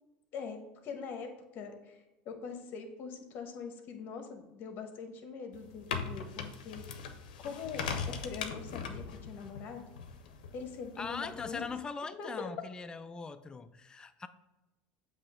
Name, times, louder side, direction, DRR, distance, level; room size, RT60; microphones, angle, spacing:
voice 1, 0.3-6.9 7.4-9.8 10.5-11.6 12.2-12.5, left 5 dB, 50° left, 1.2 m, -43 dB
sound 1, 5.5-11.8, left 6 dB, 90° left, 0.6 m, -41 dB
voice 2, 11.0-14.3, left 5 dB, 20° left, 0.4 m, -40 dB
7.4 x 3.0 x 4.9 m
supercardioid pair, 105°, 4 cm